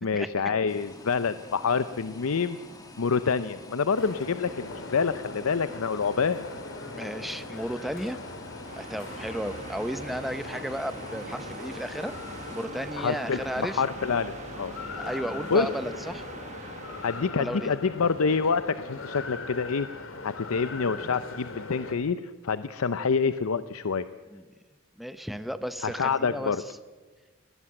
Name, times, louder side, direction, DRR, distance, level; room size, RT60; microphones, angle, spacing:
voice 1, 0.0-2.6 3.0-6.5 13.0-14.7 15.5-15.7 17.0-19.9 20.2-22.2 22.4-24.1 25.8-26.6, left 5 dB, 85° left, 13 dB, 0.6 m, -27 dB
sound 1, 0.7-12.7, left 1 dB, 15° left, 2.0 m, -47 dB
sound 2, 3.9-21.9, left 3 dB, 70° left, 2.4 m, -40 dB
voice 2, 6.9-8.2 8.8-12.1 12.5-13.8 15.0-16.2 17.4-17.7 24.3-24.4 25.0-26.5, equal, ahead, 11 dB, 0.7 m, -34 dB
sound 3, 8.6-17.3, right 3 dB, 35° right, 1.6 m, -43 dB
19.0 x 18.0 x 7.5 m, 1.3 s
head